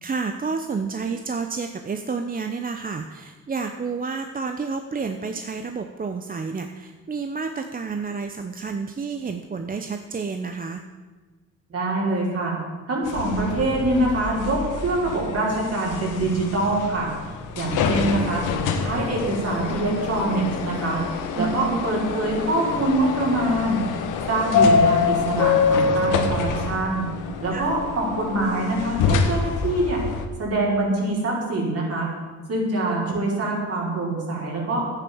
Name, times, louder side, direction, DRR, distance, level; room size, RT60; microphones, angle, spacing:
voice 1, 0.0-10.8 21.4-21.9 27.5-27.7 33.0-33.2, right 5 dB, 30° right, 6 dB, 0.8 m, -30 dB
voice 2, 11.7-12.5 12.9-17.1 17.5-18.4 18.7-21.0 21.3-23.8 24.3-27.1 27.4-30.0 30.4-32.1 32.5-34.8, right 2 dB, 50° right, -3 dB, 4.9 m, -24 dB
sound 1, 13.1-30.3, left 5 dB, 90° left, 1.3 m, -25 dB
10.5 x 9.3 x 7.1 m, 1.3 s
cardioid pair, 90°, 30 cm